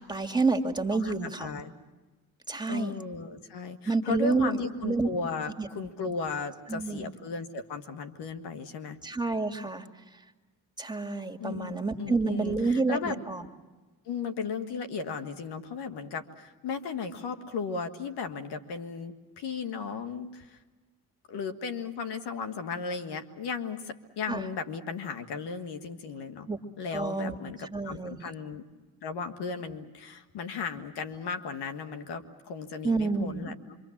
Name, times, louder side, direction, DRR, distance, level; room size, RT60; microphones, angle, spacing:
voice 1, 0.0-1.6 2.5-3.0 3.9-4.6 4.8-5.1 5.6-5.7 6.7-7.1 9.0-9.8 10.8-13.5 24.3-24.4 26.5-26.6 26.9-27.4 27.7-28.3 32.8-33.5, right 3 dB, 10° right, 5 dB, 2.3 m, -29 dB
voice 2, 1.4-1.7 2.7-9.0 11.4-13.2 14.1-20.6 21.3-26.5 26.8-28.6 29.0-33.8, left 5 dB, 80° left, 7 dB, 1.7 m, -36 dB
26.0 x 25.0 x 7.3 m, 1.2 s
supercardioid pair, 60°, 39 cm